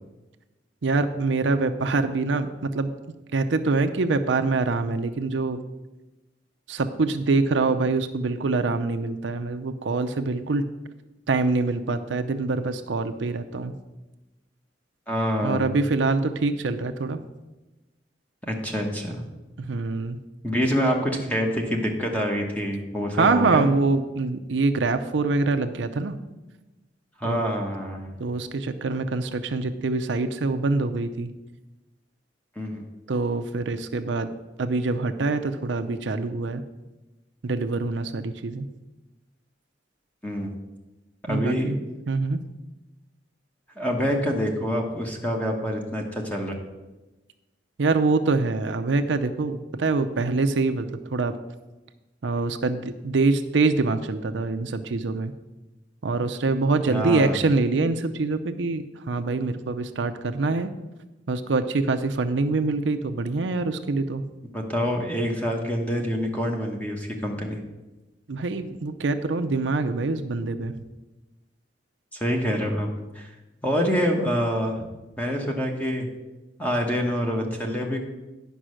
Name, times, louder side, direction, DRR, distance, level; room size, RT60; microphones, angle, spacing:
voice 1, 0.8-2.9 3.3-5.6 6.7-10.6 11.3-13.7 15.4-17.2 19.7-20.2 23.1-26.2 27.2-27.6 28.2-31.3 33.1-34.3 34.6-36.6 37.4-38.7 41.3-41.8 42.1-42.4 47.8-51.4 52.2-55.3 56.0-60.7 61.3-64.2 68.3-70.7, right 3 dB, 75° right, 8 dB, 0.6 m, -25 dB
voice 2, 15.1-15.7 18.5-19.2 20.4-23.7 27.2-28.1 32.6-32.8 40.2-40.5 41.3-41.7 43.8-46.5 56.9-57.4 64.5-67.6 72.1-72.9 73.1-73.3 73.6-74.8 75.2-76.1 76.6-78.0, equal, 10° left, 1 dB, 1.1 m, -26 dB
10.0 x 5.4 x 6.3 m, 1.1 s
head